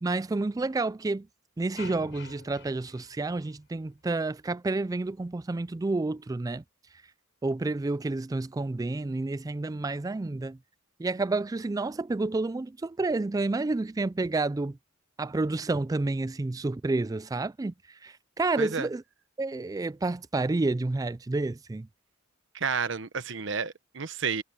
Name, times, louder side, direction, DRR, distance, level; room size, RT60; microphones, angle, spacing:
voice 1, 0.0-1.3 1.6-6.6 7.4-10.6 11.0-14.8 15.2-17.7 18.0-19.0 19.4-21.9, right 3 dB, 20° right, 0.3 m, -29 dB
sound 1, 1.8-4.0, left 4 dB, 65° left, 6.4 m, -48 dB
voice 2, 18.6-18.9 22.5-24.4, right 5 dB, 65° right, 1.0 m, -31 dB
head